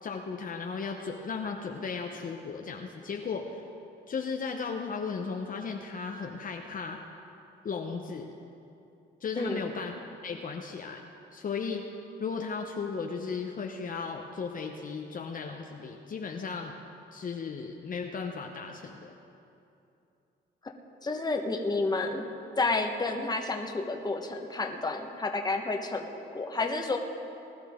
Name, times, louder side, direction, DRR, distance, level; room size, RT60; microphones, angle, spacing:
voice 1, 0.0-3.6 4.1-7.0 7.6-8.3 9.2-9.9 10.2-11.0 11.3-11.8 12.2-16.8 17.1-19.1, left 5 dB, 45° left, 2 dB, 0.9 m, -35 dB
voice 2, 21.0-22.2 22.6-27.0, left 3 dB, 20° left, 3 dB, 1.2 m, -30 dB
20.0 x 11.5 x 3.7 m, 2.8 s
cardioid pair, 90°, 20 cm